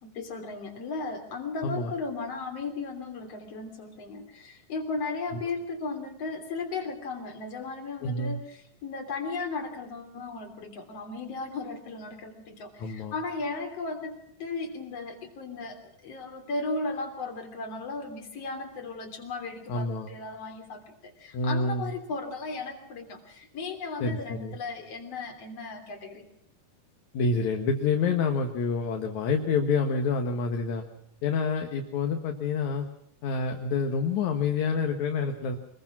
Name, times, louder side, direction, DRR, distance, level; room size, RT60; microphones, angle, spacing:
voice 1, 0.0-26.2, left 3 dB, 40° left, 4 dB, 4.0 m, -36 dB
voice 2, 8.0-8.4 12.8-13.1 19.7-20.1 21.3-21.9 24.0-24.5 27.1-30.8 31.2-32.9 33.2-35.6, left 4 dB, 60° left, 4 dB, 2.5 m, -27 dB
25.0 x 21.5 x 6.1 m, 0.76 s
omnidirectional pair, 4.5 m